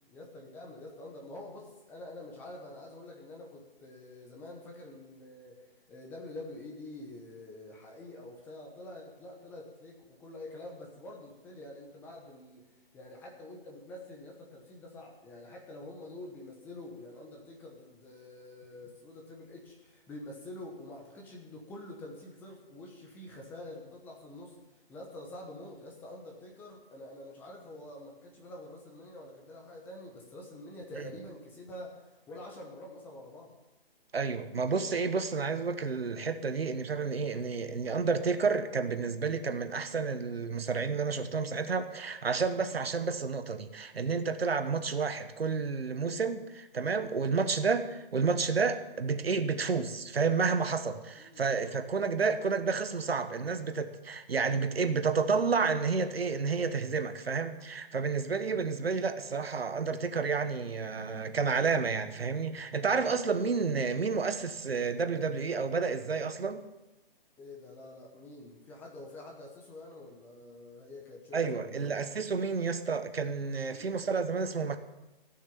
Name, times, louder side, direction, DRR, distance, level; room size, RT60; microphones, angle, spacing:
voice 1, 0.1-5.6 5.9-12.6 12.9-24.6 24.9-33.5 51.2-51.4 67.4-72.0 73.7-74.0, left 1 dB, 5° left, 0 dB, 1.0 m, -47 dB
voice 2, 34.1-66.6 71.3-74.8, right 5 dB, 75° right, 10 dB, 1.4 m, -30 dB
15.5 x 6.5 x 8.6 m, 1.0 s
hypercardioid pair, 160°, 30 cm